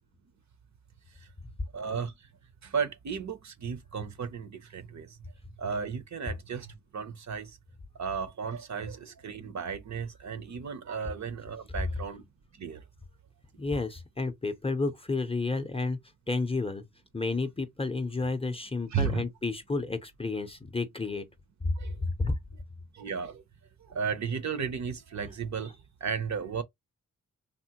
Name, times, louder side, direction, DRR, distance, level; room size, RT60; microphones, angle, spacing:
voice 1, 1.7-2.1 2.6-5.2 5.6-7.6 8.0-12.3 12.5-12.8 18.9-19.2 21.8-22.0 22.9-23.4 23.8-26.6, right 6 dB, 60° right, 0.6 m, -34 dB
voice 2, 13.6-16.0 16.3-16.8 17.1-21.3 21.6-21.8 22.2-22.4, left 3 dB, 20° left, 0.5 m, -31 dB
3.5 x 2.0 x 2.8 m
wide cardioid pair, 90°, 32 cm